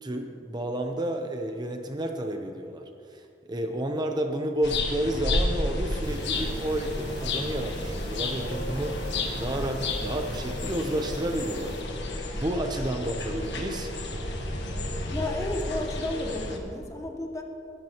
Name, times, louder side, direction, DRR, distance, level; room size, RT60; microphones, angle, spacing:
voice 1, 0.0-2.8 3.1-11.8 12.2-13.9, right 1 dB, 25° right, 4 dB, 0.8 m, -31 dB
sound 1, 4.6-16.6, left 2 dB, 90° left, 1.6 m, -31 dB
sound 2, 6.0-11.8, right 1 dB, 80° right, 1.7 m, -43 dB
voice 2, 15.1-17.4, left 2 dB, 20° left, 3 dB, 1.1 m, -32 dB
21.5 x 12.0 x 3.0 m, 2.4 s
head